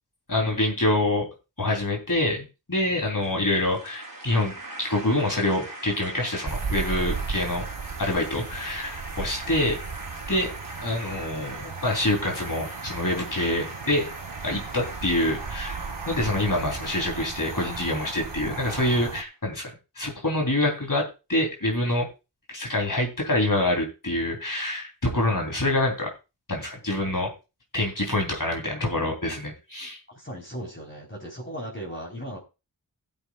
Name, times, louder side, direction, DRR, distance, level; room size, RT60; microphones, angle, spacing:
voice 1, 0.3-1.3 1.6-7.6 8.0-9.8 10.3-10.5 10.8-14.1 14.4-15.8 16.0-22.1 22.5-26.1 26.5-27.3 27.7-30.0, left 1 dB, 50° left, 1 dB, 3.4 m, -26 dB
sound 1, 3.2-19.3, right 2 dB, 55° right, 3.6 m, -41 dB
sound 2, 6.5-19.2, right 5 dB, 85° right, 1.1 m, -36 dB
voice 2, 30.1-32.4, equal, 25° left, -2 dB, 3.9 m, -37 dB
18.0 x 7.9 x 2.4 m, 0.28 s
wide cardioid pair, 50°, 42 cm